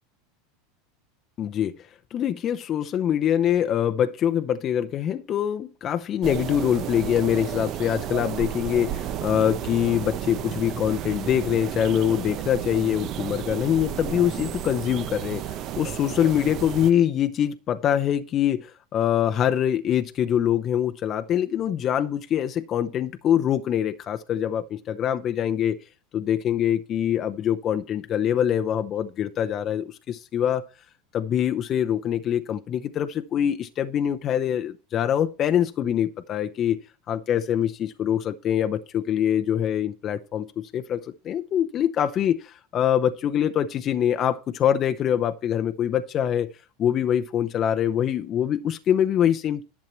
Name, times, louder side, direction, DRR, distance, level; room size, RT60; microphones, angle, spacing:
voice 1, 1.4-25.8 26.1-30.6 31.1-36.8 37.1-40.5 40.7-46.5 46.8-49.6, left 10 dB, 35° left, 0.7 m, -24 dB
sound 1, 6.2-16.9, right 11 dB, 45° right, 0.8 m, -32 dB
11.0 x 7.4 x 4.4 m
supercardioid pair, 125°, 0 cm